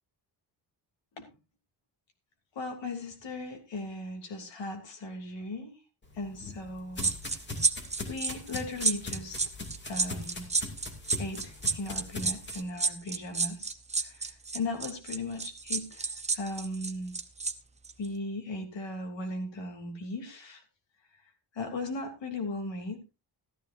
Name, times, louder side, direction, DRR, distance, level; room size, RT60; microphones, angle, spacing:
voice 1, 2.5-5.7 6.2-7.1 8.1-9.4 9.8-10.4 11.2-16.1 16.3-17.1 18.0-20.6 21.5-23.0, left 2 dB, 90° left, 4 dB, 3.1 m, -37 dB
sound 1, 6.0-12.6, left 2 dB, 25° left, 2.4 m, -41 dB
sound 2, 7.0-17.5 17.8-18.1, right 4 dB, 15° right, 0.7 m, -30 dB
14.0 x 13.5 x 2.6 m, 0.27 s
wide cardioid pair, 165°, 43 cm